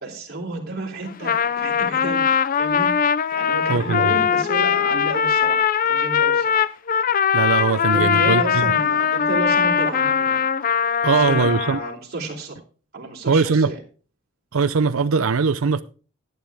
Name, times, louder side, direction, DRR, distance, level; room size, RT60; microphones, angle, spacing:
voice 1, 0.0-2.3 2.6-2.9 3.3-6.7 7.9-10.4 11.0-12.6 12.9-13.8, right 2 dB, 50° right, 3.2 m, -31 dB
Trumpet, 1.1-11.9, left 7 dB, 40° left, 0.4 m, -21 dB
voice 2, 3.7-4.2 7.3-8.6 11.0-11.8 13.3-13.7 14.5-15.8, right 5 dB, 85° right, 0.6 m, -20 dB
11.5 x 11.0 x 3.5 m
head